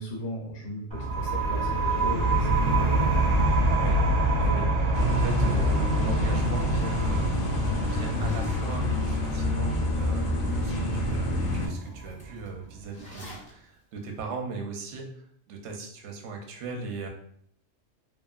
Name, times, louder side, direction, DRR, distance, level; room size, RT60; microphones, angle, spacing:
voice 1, 0.0-3.0, left 1 dB, 80° left, -2 dB, 1.1 m, -36 dB
sound 1, 0.9-12.3, right 2 dB, 90° right, 0.3 m, -27 dB
voice 2, 4.4-15.1 15.5-17.1, right 4 dB, 70° right, 2 dB, 0.8 m, -38 dB
sound 2, 4.9-11.7, left 2 dB, 60° left, 0.6 m, -27 dB
Zipper (clothing), 7.8-10.0 10.5-10.6 11.1-11.2 11.5-13.5, right 1 dB, 10° left, 0.5 m, -44 dB
2.7 x 2.5 x 2.3 m, 0.65 s
omnidirectional pair, 1.3 m